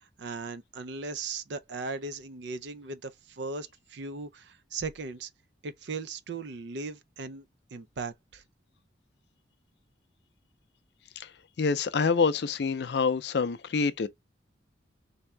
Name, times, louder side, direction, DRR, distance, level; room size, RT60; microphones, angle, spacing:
voice 1, 0.2-5.3 5.6-7.4 7.7-8.4, right 3 dB, 65° right, 0.4 m, -38 dB
voice 2, 11.6-14.1, left 5 dB, 60° left, 0.4 m, -26 dB
3.5 x 2.7 x 3.2 m
head